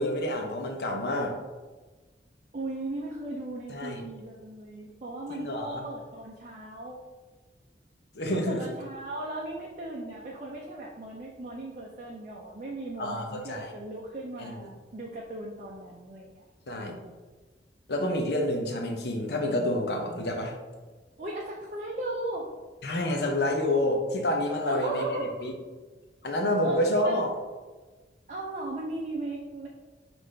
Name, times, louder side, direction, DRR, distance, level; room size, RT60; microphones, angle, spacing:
voice 1, 0.0-1.3 3.7-4.0 5.3-5.8 8.1-8.6 13.0-13.7 14.4-14.5 16.7-16.9 17.9-20.5 22.8-25.5 26.2-27.3, left 1 dB, 65° left, 2 dB, 0.7 m, -28 dB
voice 2, 2.5-7.0 8.3-16.4 16.8-17.2 21.2-22.5 24.7-25.5 26.6-26.8 27.0-27.2 28.3-29.7, right 2 dB, 45° right, -2 dB, 0.5 m, -37 dB
5.6 x 2.6 x 3.2 m, 1.3 s
head